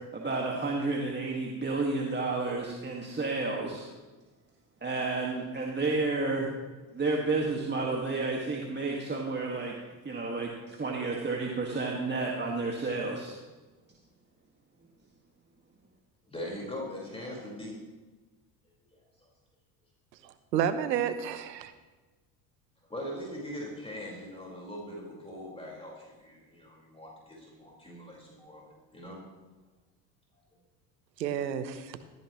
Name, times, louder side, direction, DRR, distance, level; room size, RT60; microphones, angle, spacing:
voice 1, 0.1-3.9 4.8-6.5 6.9-9.7 10.0-13.3, right 3 dB, 20° right, -1 dB, 1.9 m, -31 dB
voice 2, 16.3-17.8 19.2-19.3 22.9-29.2, left 1 dB, 10° left, -3 dB, 4.6 m, -41 dB
voice 3, 20.2-21.7 31.2-32.0, right 9 dB, 90° right, 10 dB, 1.0 m, -31 dB
14.5 x 13.0 x 3.1 m, 1.2 s
hypercardioid pair, 70°, 49 cm